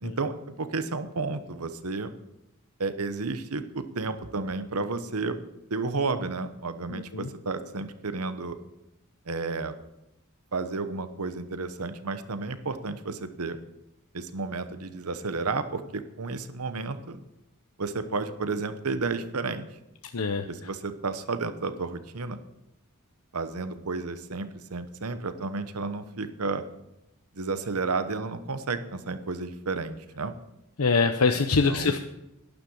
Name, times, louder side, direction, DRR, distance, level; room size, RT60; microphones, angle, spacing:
voice 1, 0.0-2.1 2.8-5.4 5.7-8.6 9.3-9.7 10.5-13.6 14.1-17.2 17.8-19.7 20.5-22.4 23.3-26.6 27.3-30.3 31.6-32.0, right 3 dB, 80° right, 11 dB, 1.0 m, -32 dB
voice 2, 6.9-7.3 20.1-20.4 30.8-32.0, left 4 dB, 75° left, 6 dB, 0.8 m, -24 dB
12.0 x 10.5 x 6.5 m, 0.90 s
head